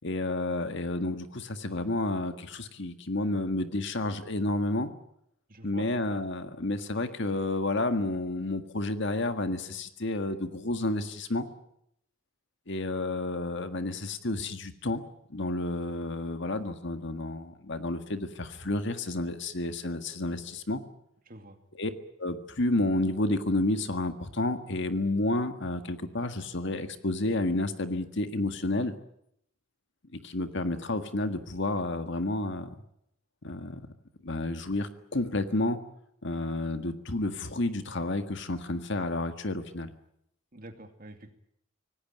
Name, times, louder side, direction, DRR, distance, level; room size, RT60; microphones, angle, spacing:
voice 1, 0.0-4.9 5.6-11.5 12.7-15.0 15.3-20.8 21.7-21.9 22.2-28.9 30.1-32.7 33.4-33.8 34.2-35.8 36.2-39.9, left 2 dB, 60° left, 8 dB, 1.8 m, -30 dB
voice 2, 5.5-5.9 21.3-21.6 40.5-41.3, right 1 dB, 45° right, 6 dB, 2.4 m, -46 dB
26.0 x 18.5 x 9.0 m, 0.74 s
head